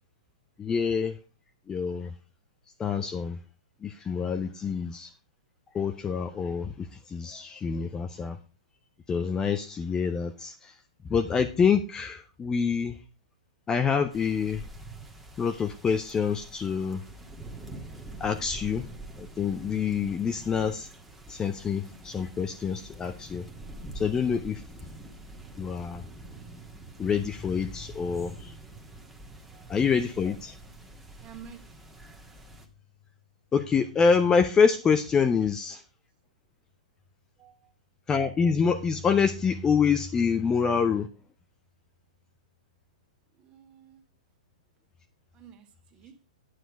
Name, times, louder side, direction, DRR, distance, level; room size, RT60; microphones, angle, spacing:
voice 1, 0.6-1.2 1.7-2.1 2.8-3.4 3.8-5.1 5.7-8.4 9.1-10.8 11.1-13.0 13.7-14.7 15.4-17.0 18.2-18.9 19.2-20.9 21.3-23.5 23.9-24.6 25.6-26.0 27.0-28.5 29.7-30.5 33.5-35.8 38.1-41.1, left 6 dB, 15° left, 0.7 m, -26 dB
sound 1, 14.1-32.7, right 2 dB, 5° right, 1.5 m, -46 dB
voice 2, 31.2-31.7 37.4-37.7 43.4-44.0 45.3-46.1, right 8 dB, 30° right, 1.8 m, -50 dB
9.2 x 7.6 x 4.7 m
hypercardioid pair, 120°, 4 cm